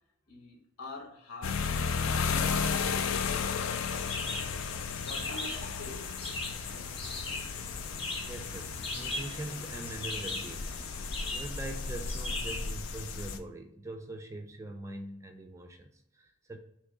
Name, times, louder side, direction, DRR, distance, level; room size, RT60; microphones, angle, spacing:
voice 1, 0.3-3.5 5.0-6.1 6.6-7.1, left 2 dB, 80° left, 1 dB, 1.1 m, -47 dB
sound 1, 1.4-13.4, left 6 dB, 65° left, 0.4 m, -34 dB
sound 2, 3.9-12.7, left 2 dB, 25° left, 0.6 m, -39 dB
voice 2, 8.2-16.6, right 2 dB, 15° right, 5 dB, 0.3 m, -43 dB
3.5 x 2.8 x 4.7 m, 0.76 s
head